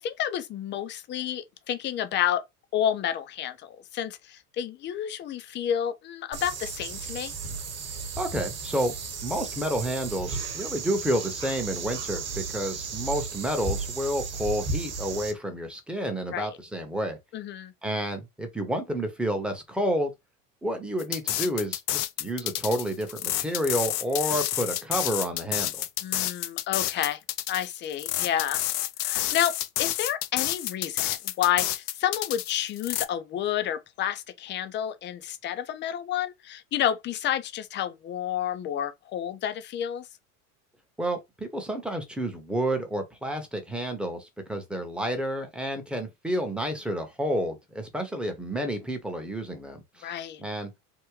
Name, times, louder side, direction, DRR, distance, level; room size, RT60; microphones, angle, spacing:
voice 1, 0.0-2.4 2.7-7.3 16.3-16.5 17.3-17.7 26.0-27.2 27.5-28.6 29.0-40.1 50.0-50.4, left 10 dB, 25° left, 0.5 m, -30 dB
sound 1, 6.3-15.3, right 4 dB, 35° right, 1.2 m, -34 dB
voice 2, 8.2-9.0 9.2-17.2 17.8-20.1 20.6-25.8 41.0-50.7, equal, ahead, 0.8 m, -30 dB
sound 2, 21.0-33.1, left 14 dB, 85° left, 0.6 m, -29 dB
3.6 x 2.2 x 3.0 m
supercardioid pair, 110°, 45 cm